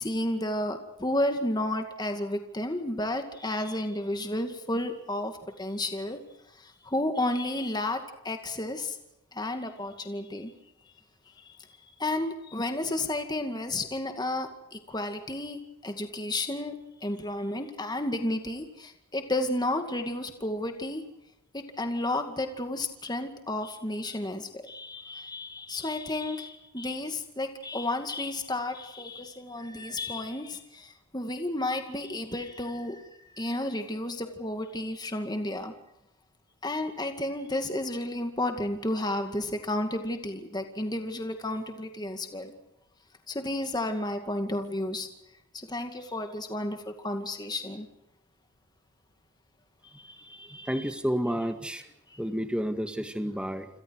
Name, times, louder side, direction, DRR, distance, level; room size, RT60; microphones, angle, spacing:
voice 1, 0.0-6.2 6.5-9.0 9.3-10.5 11.3-11.6 12.0-16.7 17.0-21.0 21.5-35.7 36.6-42.5 43.3-45.1 45.5-47.9 49.8-50.9 52.1-52.2, left 1 dB, 20° left, 6 dB, 2.2 m, -32 dB
voice 2, 50.7-51.8 52.2-53.7, equal, 5° right, 7 dB, 1.9 m, -30 dB
28.5 x 27.5 x 4.8 m, 0.84 s
head